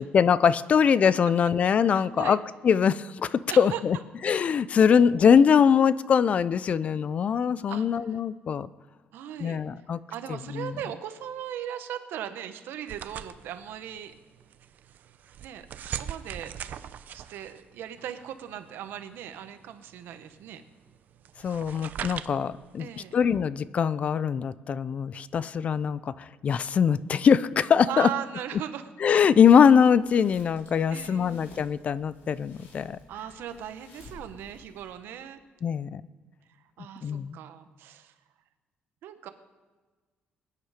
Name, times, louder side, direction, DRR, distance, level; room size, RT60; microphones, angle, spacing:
voice 1, 0.0-2.4 2.6-4.0 4.2-8.7 9.4-10.0 10.3-10.7 21.4-28.1 29.0-33.0 35.6-36.0 37.0-37.4, left 7 dB, 40° left, 17 dB, 0.4 m, -22 dB
voice 2, 1.8-2.4 3.5-3.8 7.7-8.2 9.1-9.6 10.1-14.1 15.4-16.9 17.1-20.6 22.8-23.2 27.9-28.8 30.9-31.4 33.1-35.4 36.8-38.1 39.0-39.3, right 10 dB, 80° right, 9 dB, 1.1 m, -38 dB
sound 1, 12.9-23.2, right 9 dB, 55° right, 0.6 m, -42 dB
sound 2, 29.8-35.1, left 2 dB, 75° left, 4.4 m, -53 dB
21.5 x 9.7 x 5.0 m, 1.4 s
cardioid pair, 155°, 4 cm